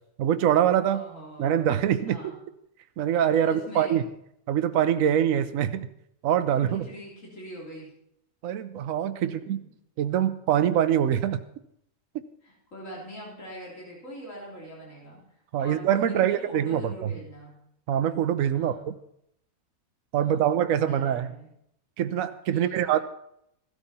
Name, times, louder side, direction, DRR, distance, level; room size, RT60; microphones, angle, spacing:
voice 1, 0.2-1.0 1.4-2.3 3.0-4.0 4.5-5.9 6.2-6.9 8.4-9.6 10.0-11.4 15.5-17.1 17.9-18.9 20.1-21.3 22.0-23.0, right 10 dB, 70° right, 10 dB, 1.1 m, -24 dB
voice 2, 0.9-1.7 2.1-2.4 3.4-4.0 6.5-7.9 9.2-9.7 12.4-15.2 15.6-17.6 18.5-18.9 20.2-20.5 20.8-21.5 22.5-23.0, equal, 60° left, -4 dB, 3.9 m, -43 dB
15.5 x 12.5 x 4.2 m, 0.74 s
omnidirectional pair, 1.5 m